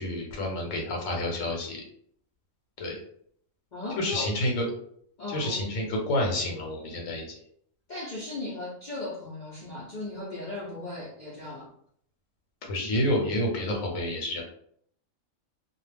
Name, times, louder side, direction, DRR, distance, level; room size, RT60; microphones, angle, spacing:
voice 1, 0.0-1.8 2.8-3.0 4.0-4.7 5.3-7.3 12.7-14.4, left 1 dB, 75° left, 0 dB, 1.0 m, -29 dB
voice 2, 3.7-4.5 5.2-5.7 7.9-11.7, left 2 dB, 55° left, -6 dB, 0.5 m, -37 dB
2.3 x 2.0 x 3.3 m, 0.66 s
omnidirectional pair, 1.4 m